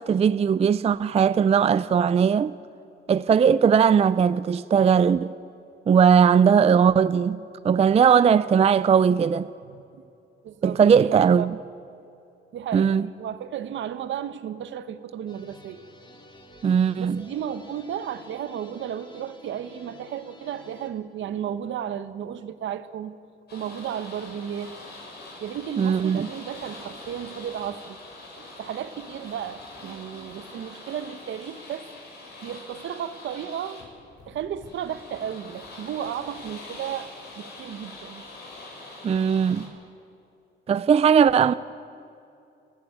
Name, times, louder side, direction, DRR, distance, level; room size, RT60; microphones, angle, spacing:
voice 1, 0.0-2.5 3.1-5.3 5.9-9.5 10.6-11.6 12.7-13.1 16.6-17.2 25.8-26.3 39.0-39.7 40.7-41.5, right 7 dB, 30° right, 0.4 m, -19 dB
voice 2, 9.6-10.0 10.4-11.5 12.5-15.8 17.0-23.2 23.5-24.8 25.4-28.0 28.4-31.9 32.4-33.9 34.3-38.2, right 9 dB, 70° right, 1.2 m, -34 dB
sound 1, 15.3-20.9, left 2 dB, 25° left, 3.0 m, -50 dB
sound 2, 23.5-39.7, left 2 dB, 55° left, 6.7 m, -44 dB
29.5 x 11.0 x 9.5 m
cardioid pair, 90°, 20 cm